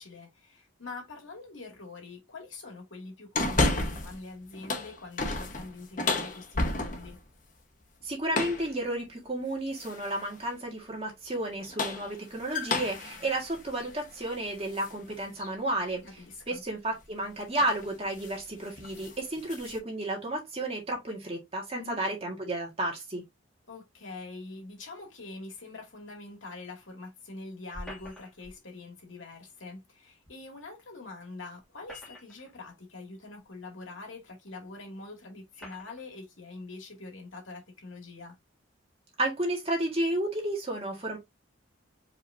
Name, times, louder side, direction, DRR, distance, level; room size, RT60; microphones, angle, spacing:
voice 1, 0.0-7.2 16.0-16.6 21.7-22.0 23.7-38.4, left 3 dB, 75° left, 2.3 m, -44 dB
sound 1, 3.4-4.2 4.5-7.2 8.3-8.7 9.8-10.2 11.5-14.9 15.4-15.5 17.0-17.3 17.6-17.8 18.2-18.4 18.7-19.8, left 2 dB, 40° left, 0.9 m, -32 dB
voice 2, 8.0-16.0 16.5-23.2 39.2-41.2, right 1 dB, 30° right, 1.8 m, -32 dB
sound 2, 27.7-28.6 30.3-30.4 31.6-32.5 33.4-33.5 34.5-34.6 35.5-36.0, left 1 dB, ahead, 2.2 m, -46 dB
4.8 x 4.0 x 2.7 m
head